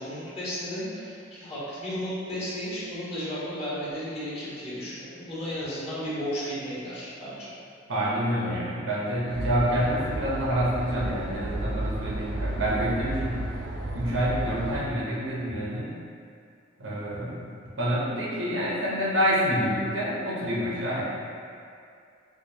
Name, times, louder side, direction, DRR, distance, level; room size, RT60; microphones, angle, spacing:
voice 1, 0.0-7.5, equal, 30° left, -10 dB, 1.3 m, -34 dB
voice 2, 7.9-13.4 13.9-15.9 16.8-17.5 17.8-21.0, equal, 85° right, -6 dB, 0.9 m, -27 dB
sound 1, 9.3-14.8, right 1 dB, 65° right, 0.5 m, -32 dB
4.8 x 2.3 x 2.8 m, 2.4 s
head